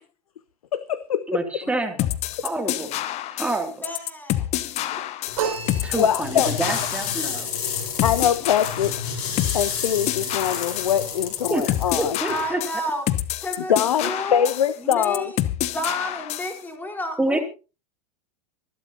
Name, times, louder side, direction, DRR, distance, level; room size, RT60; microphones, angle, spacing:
voice 1, 0.7-1.4 4.9-5.1 5.4-5.6 6.0-6.5 8.0-9.0 9.5-12.2 13.7-15.3, left 9 dB, 70° left, 0.7 m, -23 dB
voice 2, 1.3-2.1 2.4-2.9 3.3-3.8 5.8-7.5 11.5-11.6 11.9-12.6 17.2-17.4, right 2 dB, 5° right, 2.6 m, -27 dB
sound 1, 2.0-16.6, left 14 dB, 35° left, 1.0 m, -28 dB
voice 3, 3.8-4.5 12.3-13.0 13.4-13.7 14.0-14.5 14.8-15.4 15.7-17.4, equal, 10° left, 4.2 m, -31 dB
sound 2, 5.3-12.5, left 6 dB, 55° left, 5.2 m, -31 dB
sound 3, 5.4-6.6, right 7 dB, 65° right, 5.5 m, -30 dB
25.0 x 11.5 x 2.8 m
figure-of-eight pair, 90°, 19 cm